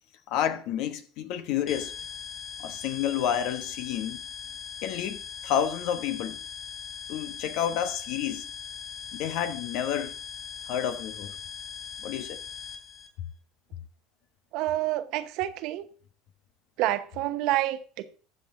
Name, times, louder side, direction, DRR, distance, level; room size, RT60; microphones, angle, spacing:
voice 1, 0.3-1.9 2.6-4.2 4.8-6.4 7.1-8.5 9.1-10.1 10.7-11.3 12.0-12.4, left 9 dB, 70° left, 1.1 m, -30 dB
sound 1, 1.7-13.1, left 7 dB, 35° left, 4.1 m, -40 dB
voice 2, 14.5-15.9 16.8-18.2, right 15 dB, 65° right, 0.9 m, -28 dB
12.0 x 7.5 x 3.8 m
supercardioid pair, 100°, 0 cm